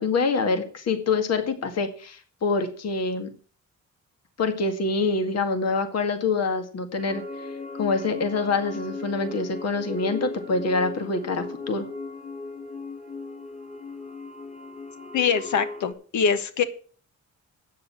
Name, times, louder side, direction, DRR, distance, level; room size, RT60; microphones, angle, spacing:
voice 1, 0.0-3.3 4.4-7.5 7.8-11.9, left 3 dB, 55° left, 8 dB, 2.0 m, -26 dB
sound 1, 7.0-15.9, left 3 dB, 25° left, 2.8 m, -37 dB
voice 2, 15.1-16.6, left 6 dB, 70° left, 11 dB, 1.5 m, -23 dB
8.9 x 6.7 x 8.6 m, 0.42 s
cardioid pair, 90°, 30 cm